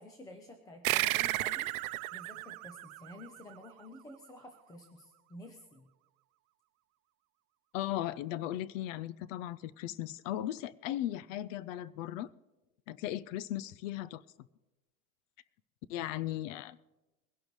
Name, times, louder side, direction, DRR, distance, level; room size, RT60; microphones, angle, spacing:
voice 1, 0.0-5.9 16.0-16.4, left 1 dB, 10° left, 5 dB, 0.5 m, -51 dB
sound 1, 0.8-3.8, right 19 dB, 90° right, 0.6 m, -33 dB
voice 2, 7.7-12.3 12.9-14.2 15.9-16.8, left 13 dB, 65° left, 19 dB, 0.5 m, -37 dB
22.0 x 11.5 x 3.1 m, 1.1 s
supercardioid pair, 165°, 41 cm